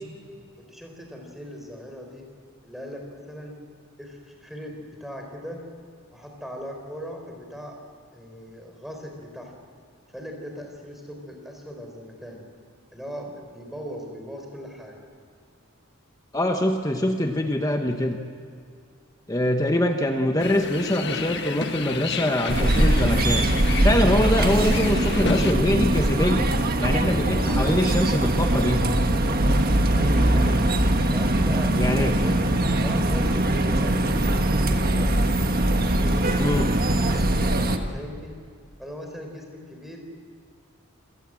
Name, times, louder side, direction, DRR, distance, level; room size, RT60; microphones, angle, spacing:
voice 1, 0.7-2.3 2.6-3.5 4.0-5.6 6.1-7.8 8.1-9.5 10.1-12.4 12.9-15.0 27.2-27.5 30.0-30.6 31.1-32.4 32.8-35.4 35.9-38.3 38.8-40.0, equal, ahead, 2 dB, 4.2 m, -39 dB
voice 2, 16.3-18.2 19.3-23.5 23.8-26.5 26.8-28.8 31.8-32.2 36.4-36.7, left 1 dB, 15° left, 4 dB, 1.1 m, -23 dB
sound 1, 20.4-25.5, left 4 dB, 55° left, 1.5 m, -31 dB
sound 2, 22.5-37.8, right 1 dB, 45° right, 1.5 m, -21 dB
27.5 x 18.0 x 7.7 m, 2.3 s
head